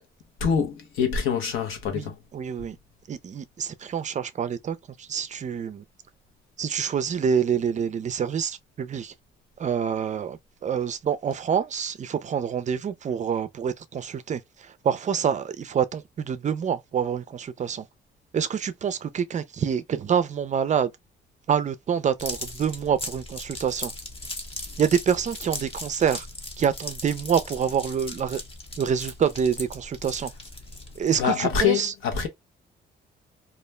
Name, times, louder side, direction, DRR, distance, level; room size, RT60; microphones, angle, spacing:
voice 1, 0.4-2.2 31.2-32.3, left 7 dB, 85° left, 0.9 m, -25 dB
voice 2, 1.9-2.8 3.1-5.8 6.6-9.1 9.6-17.9 18.3-20.9 21.5-23.9 24.8-26.3 26.6-28.4 28.8-30.3 31.0-31.9, right 7 dB, 40° right, 0.4 m, -27 dB
sound 1, 22.2-31.4, left 2 dB, 30° left, 0.7 m, -38 dB
2.4 x 2.0 x 3.1 m
cardioid pair, 90°, 20 cm